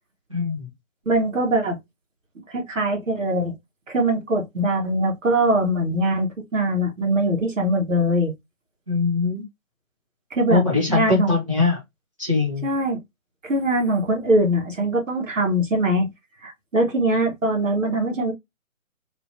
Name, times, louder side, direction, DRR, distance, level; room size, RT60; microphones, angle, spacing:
voice 1, 0.3-0.7 8.9-9.4 10.5-11.8 12.2-12.7, left 4 dB, 25° right, 0.5 m, -21 dB
voice 2, 1.1-1.8 2.5-3.5 3.9-8.3 10.3-10.6 10.9-11.3 12.6-13.0 13.4-16.1 16.4-18.3, right 1 dB, 65° right, 1.3 m, -22 dB
2.9 x 2.5 x 2.7 m
figure-of-eight pair, 150°, 41 cm